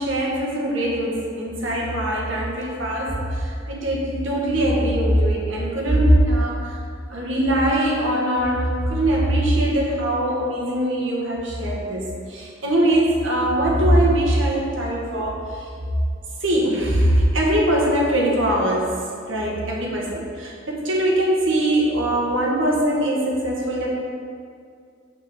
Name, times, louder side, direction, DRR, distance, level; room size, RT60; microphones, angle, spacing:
voice 1, 0.0-6.8 7.1-15.4 16.4-19.0 19.3-23.9, right 1 dB, 85° right, -3 dB, 1.5 m, -21 dB
7.2 x 6.1 x 4.3 m, 2.3 s
head